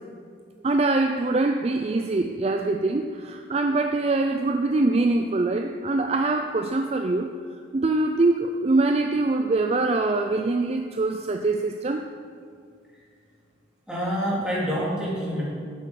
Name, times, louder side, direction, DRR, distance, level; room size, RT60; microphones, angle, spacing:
voice 1, 0.6-7.3 7.7-12.0, right 2 dB, 35° right, 5 dB, 0.4 m, -23 dB
voice 2, 13.9-15.4, equal, 5° right, -7 dB, 3.1 m, -27 dB
12.0 x 8.5 x 5.4 m, 2.2 s
head